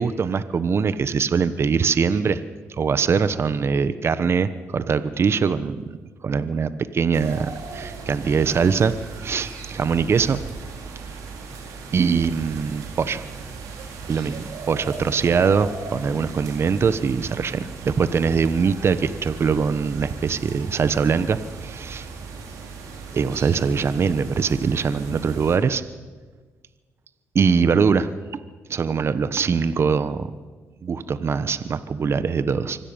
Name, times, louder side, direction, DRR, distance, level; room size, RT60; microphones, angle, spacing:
voice 1, 0.0-2.4 2.8-5.8 6.2-8.9 9.2-10.4 11.9-13.2 14.1-22.1 23.1-25.8 27.3-28.1 28.7-30.3 30.8-32.8, right 5 dB, 50° right, 13 dB, 1.2 m, -22 dB
sound 1, 7.1-25.6, right 4 dB, 85° right, 4.6 m, -37 dB
24.5 x 16.0 x 9.0 m, 1.4 s
cardioid pair, 75°, 6 cm